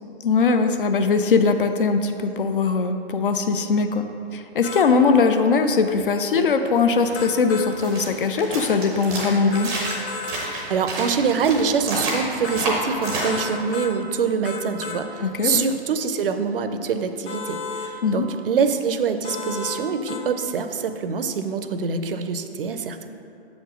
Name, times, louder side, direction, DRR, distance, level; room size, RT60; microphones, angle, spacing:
voice 1, 0.2-4.1 4.3-9.7 15.2-15.6 18.0-18.3, left 4 dB, 55° left, 8 dB, 0.5 m, -20 dB
sound 1, 4.6-4.9 7.1-7.7 9.5-10.4 12.4-12.7 13.0-13.9 14.4-15.0 17.3-17.9 19.2-19.8 20.1-20.2, left 4 dB, 85° left, 1.2 m, -32 dB
sound 2, 7.0-13.3, right 2 dB, 10° right, 0.6 m, -30 dB
voice 2, 10.7-23.1, right 5 dB, 55° right, 8 dB, 0.6 m, -25 dB
7.0 x 5.1 x 5.0 m, 2.8 s
hypercardioid pair, 155°, 33 cm